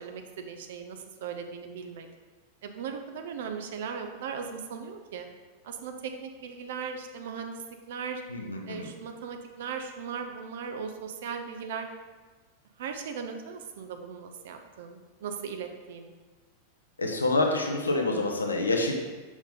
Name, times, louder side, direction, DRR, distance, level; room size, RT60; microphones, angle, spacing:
voice 1, 0.0-2.1 2.6-5.3 5.6-8.2 8.7-11.9 12.8-16.1, right 6 dB, 55° right, 5 dB, 0.6 m, -38 dB
voice 2, 8.3-8.9 17.0-18.9, left 2 dB, 80° left, 2 dB, 0.9 m, -27 dB
6.2 x 5.6 x 3.6 m, 1.3 s
figure-of-eight pair, 90°, 0 cm